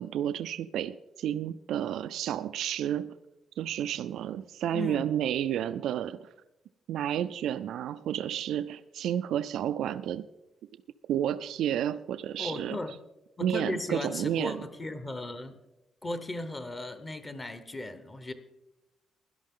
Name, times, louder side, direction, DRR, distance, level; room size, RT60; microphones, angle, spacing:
voice 1, 0.0-3.1 3.6-6.3 6.9-10.3 11.1-12.8 13.4-14.6, right 10 dB, 85° right, 13 dB, 0.4 m, -31 dB
voice 2, 4.7-5.1 12.4-13.0 13.4-15.6 16.0-18.3, left 2 dB, 20° left, 10 dB, 0.9 m, -36 dB
17.0 x 11.5 x 3.7 m, 0.96 s
cardioid pair, 170°, 0 cm